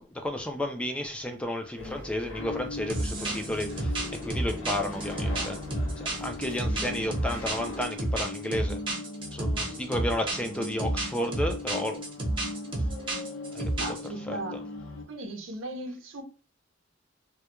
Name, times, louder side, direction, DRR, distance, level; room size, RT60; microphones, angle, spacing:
voice 1, 0.0-3.9 4.2-5.6 6.0-8.8 9.3-12.0 13.5-13.7 14.3-14.6, left 1 dB, 5° left, 0.3 m, -32 dB
sound 1, 1.8-7.9, left 2 dB, 65° left, 0.9 m, -42 dB
sound 2, 2.4-15.0, left 2 dB, 85° left, 0.6 m, -39 dB
sound 3, 2.9-14.1, right 1 dB, 25° right, 0.7 m, -31 dB
voice 2, 13.8-14.6 15.1-16.2, right 1 dB, 90° right, 0.6 m, -37 dB
2.2 x 2.1 x 2.9 m
head